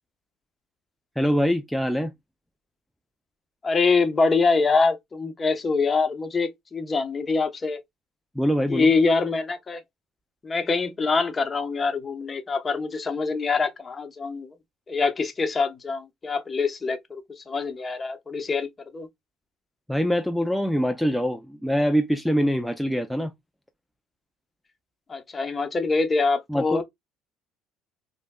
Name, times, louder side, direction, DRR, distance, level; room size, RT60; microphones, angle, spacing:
voice 1, 1.2-2.1 8.4-8.9 19.9-23.3 26.5-26.8, equal, ahead, 0.4 m, -24 dB
voice 2, 3.6-7.8 8.7-9.8 10.4-14.5 14.9-18.7 18.9-19.1 25.1-26.8, left 4 dB, 30° left, 0.9 m, -24 dB
5.1 x 2.1 x 2.2 m
hypercardioid pair, 60°, 0 cm